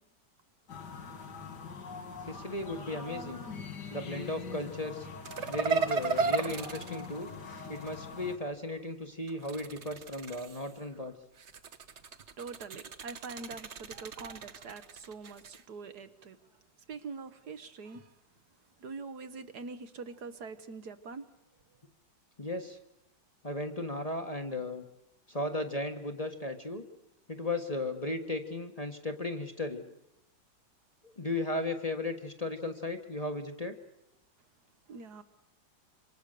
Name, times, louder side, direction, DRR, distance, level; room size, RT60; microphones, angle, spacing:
sound 1, 0.7-8.4, left 5 dB, 70° left, 2.6 m, -43 dB
voice 1, 2.3-3.5 3.9-5.1 5.5-7.3 7.7-11.1 22.4-22.8 23.4-24.8 25.3-26.8 27.3-29.8 31.0-33.7, left 2 dB, 20° left, 1.4 m, -36 dB
sound 2, 5.2-8.0 9.3-10.8 11.4-15.6, right 4 dB, 45° right, 1.2 m, -35 dB
voice 2, 12.4-16.4 16.9-18.2 18.8-21.3 34.9-35.2, right 4 dB, 65° right, 1.7 m, -44 dB
27.0 x 25.5 x 6.7 m
omnidirectional pair, 1.9 m